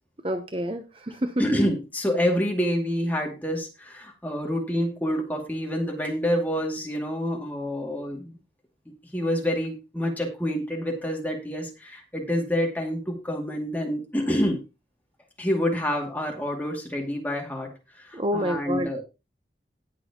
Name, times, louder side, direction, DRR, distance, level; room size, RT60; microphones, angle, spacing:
voice 1, 0.2-1.3 18.1-19.0, equal, 30° right, 7 dB, 0.8 m, -28 dB
voice 2, 1.4-8.4 9.1-14.6 15.4-17.7 17.9-19.0, equal, 10° left, 0 dB, 2.4 m, -27 dB
18.5 x 6.2 x 3.0 m, 0.28 s
head